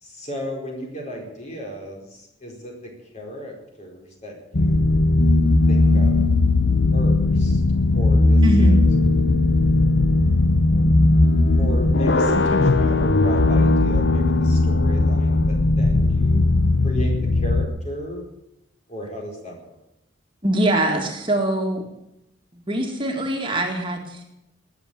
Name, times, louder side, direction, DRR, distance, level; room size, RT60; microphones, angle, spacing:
voice 1, 0.0-4.9 5.7-6.2 6.9-7.6 7.9-8.8 11.6-16.5 16.8-18.2 18.9-19.8, equal, 40° left, 0 dB, 4.6 m, -35 dB
sound 1, 4.5-17.7, left 2 dB, 70° left, 0.9 m, -18 dB
voice 2, 8.4-8.7 20.4-21.9 22.5-24.2, right 1 dB, 25° right, 1 dB, 2.1 m, -23 dB
19.5 x 7.5 x 8.8 m, 0.86 s
head